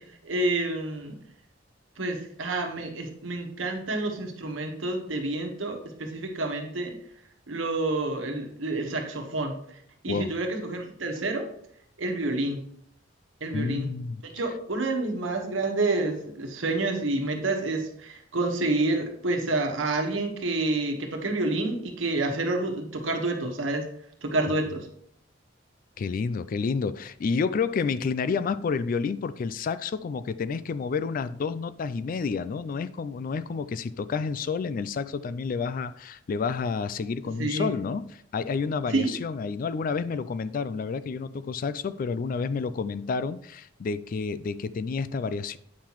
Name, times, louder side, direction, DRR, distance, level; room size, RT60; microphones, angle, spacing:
voice 1, 0.2-1.2 2.0-6.9 7.5-9.6 10.0-11.5 12.0-12.6 13.4-13.9 14.3-23.8 24.2-24.9 37.4-37.7 38.9-39.1, right 2 dB, 85° right, 1.3 m, -28 dB
voice 2, 13.5-14.2 26.0-45.6, left 5 dB, 45° left, 0.3 m, -30 dB
8.5 x 5.7 x 3.0 m
head